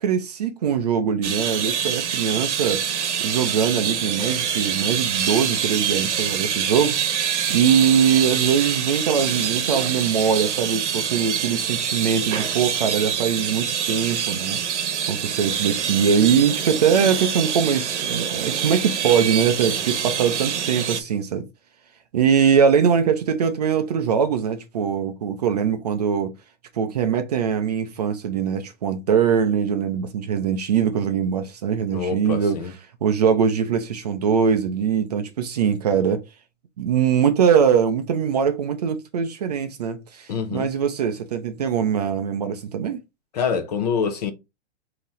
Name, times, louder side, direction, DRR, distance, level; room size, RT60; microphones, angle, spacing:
voice 1, 0.0-7.0 7.5-14.6 15.1-21.5 22.1-26.3 26.7-32.6 33.0-36.2 36.8-43.0, right 7 dB, 35° right, 0.5 m, -22 dB
sound 1, 1.2-21.0, right 8 dB, 85° right, 1.0 m, -25 dB
voice 2, 31.9-32.7 40.3-40.7 43.3-44.3, left 6 dB, 35° left, 0.7 m, -25 dB
5.2 x 2.9 x 3.0 m
hypercardioid pair, 170°, 34 cm